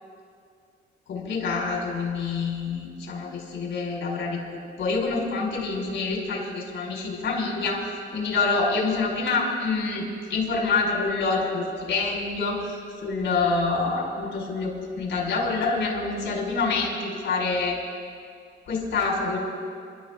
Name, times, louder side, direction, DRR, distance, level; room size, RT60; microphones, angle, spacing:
voice 1, 1.1-4.4 4.8-7.9 8.1-10.0 10.3-17.8 18.6-19.4, left 4 dB, 65° left, -2 dB, 5.4 m, -26 dB
27.5 x 13.0 x 3.9 m, 2.2 s
cardioid pair, 90°, 20 cm